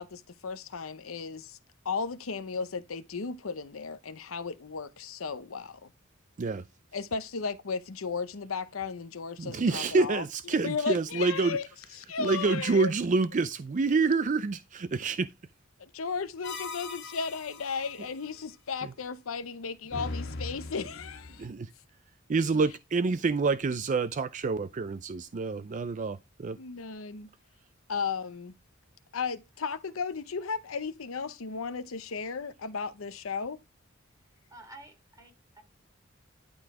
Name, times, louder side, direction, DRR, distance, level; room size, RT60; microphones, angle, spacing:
voice 1, 0.0-1.6 1.8-5.9 6.9-10.2 10.6-11.7 11.9-12.9 15.8-21.5 26.5-27.3 27.9-28.5 29.1-33.6, left 5 dB, 90° left, 0.8 m, -35 dB
voice 2, 9.4-11.6 12.2-15.3 21.4-21.7 22.3-26.6, right 4 dB, 40° right, 0.4 m, -27 dB
sound 1, 16.4-18.1 19.9-21.5, left 3 dB, 60° left, 1.8 m, -40 dB
voice 3, 34.5-35.6, right 1 dB, 15° right, 3.2 m, -51 dB
11.5 x 4.0 x 4.8 m
head